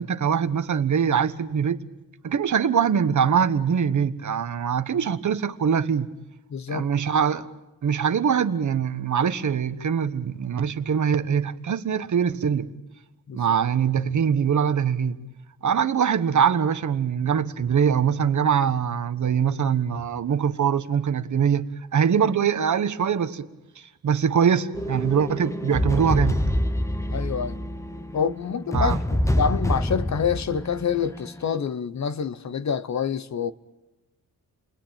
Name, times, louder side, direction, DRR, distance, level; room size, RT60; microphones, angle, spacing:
voice 1, 0.0-1.8 2.2-6.1 6.7-7.5 7.8-12.7 13.3-15.2 15.6-21.7 21.9-23.5 24.0-26.4 28.7-29.0, right 7 dB, 55° right, 1.2 m, -23 dB
voice 2, 6.5-6.9 13.3-13.4 27.1-27.6 28.1-33.5, left 7 dB, 50° left, 0.9 m, -27 dB
sound 1, 24.7-31.5, left 1 dB, 10° left, 0.9 m, -27 dB
30.0 x 20.5 x 8.9 m
wide cardioid pair, 130°, 35 cm